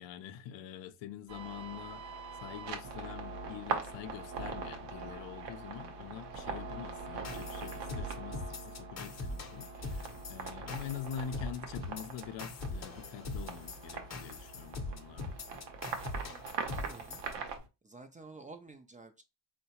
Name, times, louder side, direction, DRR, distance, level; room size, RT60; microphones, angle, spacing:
voice 1, 0.0-2.2 2.4-15.4, left 9 dB, 75° left, 0.5 m, -45 dB
sound 1, 1.3-17.6, right 5 dB, 75° right, 0.8 m, -42 dB
sound 2, 7.2-17.3, left 3 dB, 40° left, 0.7 m, -42 dB
sound 3, 9.8-17.7, equal, 45° right, 0.7 m, -56 dB
voice 2, 16.3-17.2 17.8-19.2, right 3 dB, 20° right, 0.3 m, -51 dB
3.7 x 2.2 x 2.8 m
cardioid pair, 90°, 44 cm